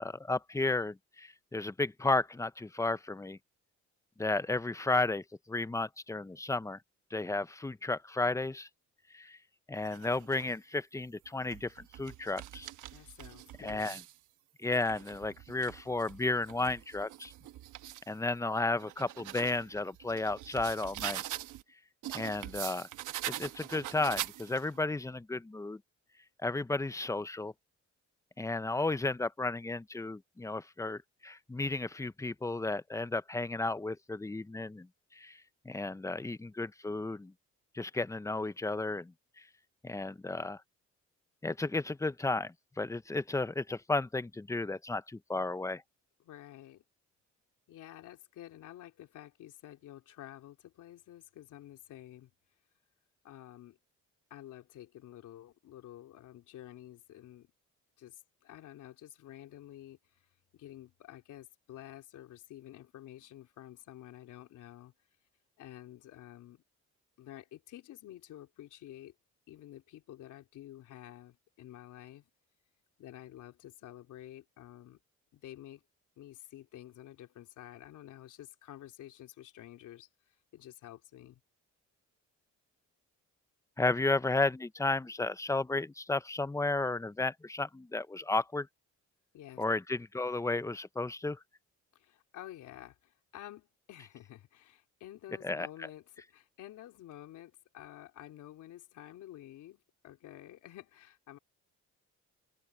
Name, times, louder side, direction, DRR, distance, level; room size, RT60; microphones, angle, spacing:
voice 1, 0.0-3.4 4.2-6.8 7.1-8.7 9.1-9.4 9.7-12.7 13.6-14.0 14.6-17.3 18.1-21.2 22.1-22.9 23.3-25.8 26.4-27.5 28.4-34.9 35.1-37.3 37.7-39.4 39.8-40.6 41.4-45.8 83.8-88.7 89.6-91.4 95.4-95.7, left 2 dB, 10° left, 0.7 m, -33 dB
sound 1, 9.8-10.5 11.2-14.2 14.6-18.1 18.6-21.6 22.0-24.8, right 14 dB, 90° right, 1.2 m, -43 dB
voice 2, 12.9-14.0 46.2-46.8 47.7-52.3 53.2-53.8 54.3-57.5 58.0-60.2 60.5-64.9 65.6-66.6 67.2-69.1 69.5-72.3 73.0-75.0 75.3-75.8 76.2-81.4 89.3-89.6 91.9-101.4, left 13 dB, 85° left, 3.5 m, -50 dB
cardioid pair, 90°, 30 cm